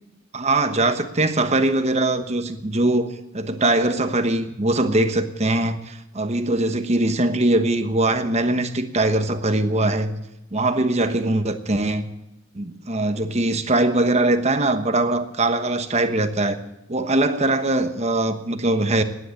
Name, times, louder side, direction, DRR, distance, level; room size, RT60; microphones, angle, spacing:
voice 1, 0.3-10.1 10.5-12.0 12.5-16.6 16.9-19.0, right 2 dB, 35° right, 1.1 m, -21 dB
17.0 x 10.5 x 7.2 m
head